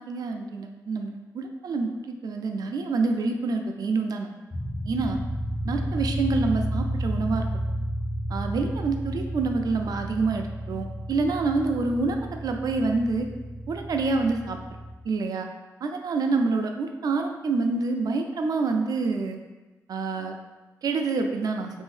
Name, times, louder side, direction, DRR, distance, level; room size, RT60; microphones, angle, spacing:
voice 1, 0.0-1.9 2.2-4.3 4.9-5.2 5.7-7.5 8.3-12.2 12.4-13.3 13.7-14.6 15.1-15.5 15.8-19.4 19.9-20.3 20.8-21.7, right 3 dB, 65° right, 4 dB, 0.4 m, -27 dB
sound 1, 4.5-14.9, equal, 15° left, 0.6 m, -32 dB
2.7 x 2.6 x 3.2 m, 1.2 s
cardioid pair, 55°, 7 cm